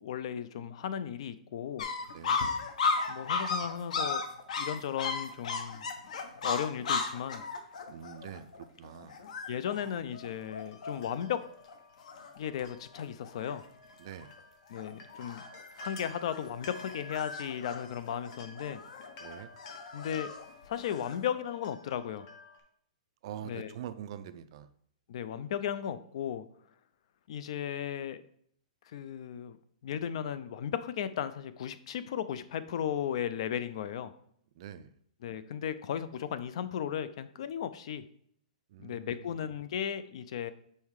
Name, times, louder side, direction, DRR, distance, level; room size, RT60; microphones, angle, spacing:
voice 1, 0.0-1.9 3.1-4.2 4.6-5.8 6.4-7.4 9.5-11.4 12.4-13.6 14.7-15.4 15.8-18.8 19.9-20.3 20.7-22.3 23.4-23.7 25.1-26.5 27.3-28.2 28.9-29.6 29.8-34.1 35.2-38.0 38.8-40.5, left 9 dB, 45° left, 13 dB, 0.4 m, -35 dB
sound 1, 1.8-11.2 11.7-11.8 12.0-12.7 12.9-13.6 14.1-14.4 14.7-21.3, left 4 dB, 60° left, 0.9 m, -35 dB
voice 2, 7.9-9.1 14.0-14.3 19.2-19.5 23.2-24.7 34.6-34.9 38.7-39.1, right 10 dB, 40° right, 12 dB, 0.4 m, -44 dB
sound 2, 10.2-22.6, left 2 dB, 30° left, 1.0 m, -52 dB
5.5 x 4.4 x 4.7 m, 0.67 s
hypercardioid pair, 170°, 4 cm